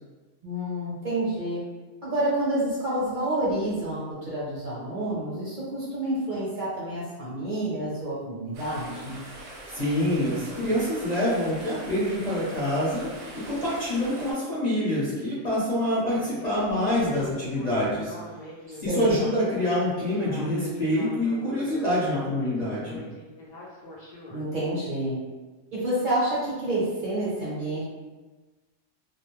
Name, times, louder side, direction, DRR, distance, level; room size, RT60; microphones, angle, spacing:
voice 1, 0.4-1.6 2.0-9.2 18.7-19.1 24.3-25.2 25.7-27.8, right 1 dB, 45° right, -9 dB, 0.9 m, -29 dB
sound 1, 8.5-14.3, right 1 dB, 75° right, 0.9 m, -43 dB
voice 2, 9.7-18.1 18.8-23.0, left 1 dB, 40° left, -10 dB, 0.8 m, -26 dB
Speech synthesizer, 16.1-24.4, left 1 dB, 55° left, 0.5 m, -43 dB
2.3 x 2.1 x 3.1 m, 1.2 s
omnidirectional pair, 1.3 m